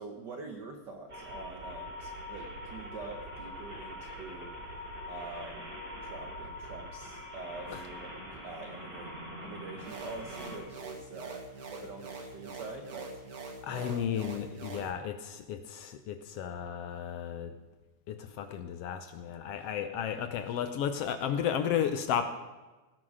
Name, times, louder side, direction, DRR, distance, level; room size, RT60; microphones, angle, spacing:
voice 1, 0.0-4.6 5.1-13.2 13.7-14.1 19.5-19.7, right 3 dB, 80° right, 4 dB, 0.9 m, -45 dB
sound 1, 1.1-10.6, left 1 dB, 15° right, 4.7 m, -43 dB
sound 2, 9.8-14.9, right 3 dB, 45° right, 1.3 m, -44 dB
voice 2, 13.6-17.5 18.1-22.3, left 9 dB, 75° left, 9 dB, 1.4 m, -33 dB
17.5 x 10.5 x 5.0 m, 1.2 s
omnidirectional pair, 3.6 m